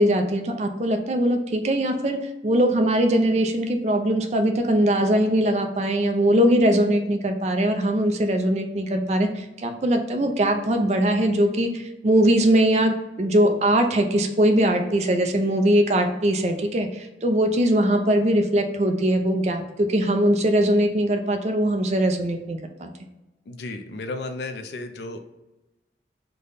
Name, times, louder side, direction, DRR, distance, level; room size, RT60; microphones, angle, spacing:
voice 1, 0.0-22.9, right 1 dB, 40° right, 5 dB, 0.4 m, -21 dB
voice 2, 23.5-25.3, left 2 dB, 70° left, 7 dB, 0.4 m, -33 dB
3.3 x 2.1 x 3.8 m, 1.0 s
head